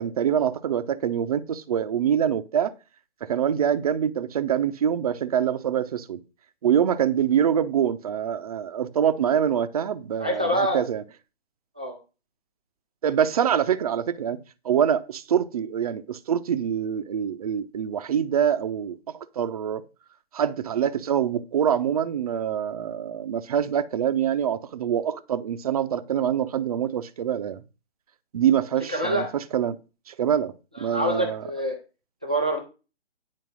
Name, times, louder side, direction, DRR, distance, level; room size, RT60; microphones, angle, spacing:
voice 1, 0.0-2.7 3.2-6.2 6.6-11.0 13.0-14.4 14.6-19.8 20.3-27.6 28.3-29.8 30.1-31.4, right 9 dB, 35° right, 0.7 m, -25 dB
voice 2, 10.2-10.8 11.8-12.0 28.9-29.3 30.8-31.8 32.2-32.6, equal, 5° right, 0.4 m, -25 dB
9.6 x 4.5 x 6.2 m
figure-of-eight pair, 145°, 33 cm